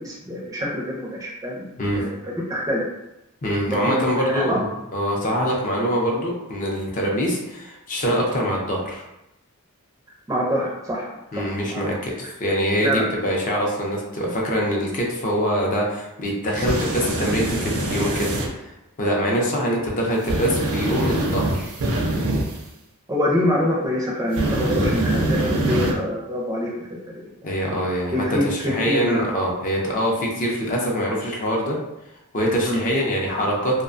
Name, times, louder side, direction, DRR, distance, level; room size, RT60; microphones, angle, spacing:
voice 1, 0.0-1.6 2.0-2.1 2.5-2.8 3.7-4.6 10.3-11.1 11.4-11.8 12.8-13.0 19.3-19.4 23.1-27.2 28.1-29.2 32.6-32.8, equal, 15° right, -4 dB, 0.4 m, -25 dB
voice 2, 3.4-9.0 11.3-18.7 19.0-21.7 27.4-31.8 32.3-33.8, equal, 35° left, -2 dB, 0.5 m, -24 dB
sound 1, 16.5-18.5 20.2-22.6 24.3-25.9, right 1 dB, 70° right, 0.5 m, -24 dB
2.3 x 2.1 x 2.5 m, 0.90 s
head